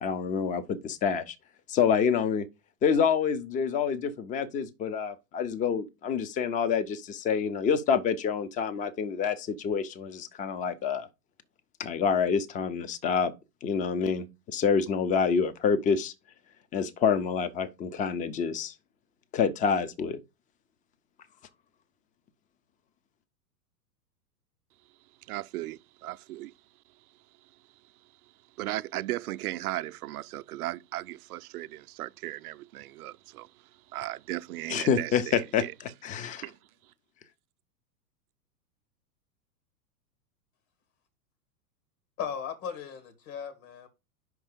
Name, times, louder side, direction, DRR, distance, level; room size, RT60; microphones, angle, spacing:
voice 1, 0.0-1.4 1.7-2.5 2.8-11.1 11.8-13.3 13.6-16.1 16.7-18.7 19.3-20.2 34.7-36.4, left 6 dB, 15° left, 0.5 m, -27 dB
voice 2, 25.2-26.5 27.4-27.5 28.6-35.7 36.4-36.6, right 16 dB, 65° right, 0.6 m, -37 dB
voice 3, 42.2-43.9, left 7 dB, 55° left, 2.0 m, -37 dB
5.4 x 4.6 x 5.1 m
hypercardioid pair, 105°, 49 cm